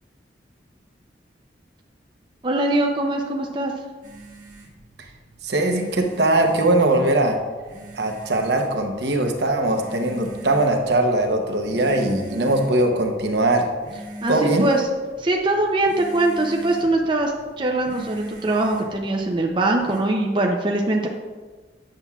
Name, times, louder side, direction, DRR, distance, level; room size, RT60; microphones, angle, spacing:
voice 1, 2.4-3.7 14.2-14.8 15.2-17.3 17.6-21.1, right 2 dB, 25° right, 1 dB, 0.5 m, -22 dB
sound 1, 4.0-20.0, right 1 dB, 45° right, 1.3 m, -41 dB
voice 2, 5.4-7.4 8.0-13.7 14.3-14.7, right 2 dB, 65° right, 3 dB, 0.8 m, -20 dB
8.9 x 7.0 x 2.3 m, 1.4 s
head